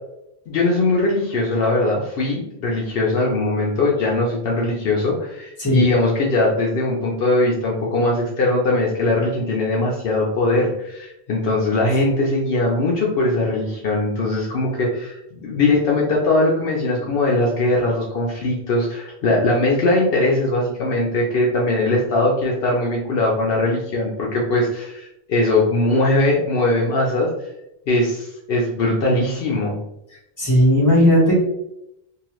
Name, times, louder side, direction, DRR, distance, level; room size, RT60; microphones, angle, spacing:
voice 1, 0.5-27.3 27.9-29.7, left 2 dB, 70° left, -3 dB, 0.8 m, -20 dB
voice 2, 30.4-31.4, equal, 20° left, -6 dB, 1.2 m, -15 dB
2.8 x 2.3 x 2.9 m, 0.84 s
omnidirectional pair, 1.1 m